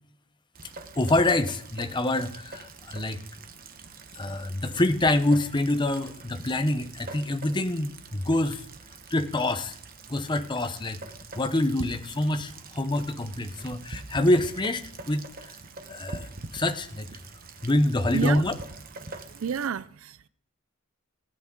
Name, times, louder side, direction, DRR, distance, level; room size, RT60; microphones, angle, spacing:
Rain, 0.5-19.7, right 3 dB, 40° right, 1.0 m, -44 dB
voice 1, 1.0-3.2 4.2-8.6 9.1-9.8 10.1-11.0 11.4-15.3 15.9-16.3 16.5-17.1 17.6-18.5, left 1 dB, 20° left, 0.8 m, -26 dB
voice 2, 19.3-20.3, right 7 dB, 65° right, 0.4 m, -30 dB
16.5 x 8.5 x 3.8 m
head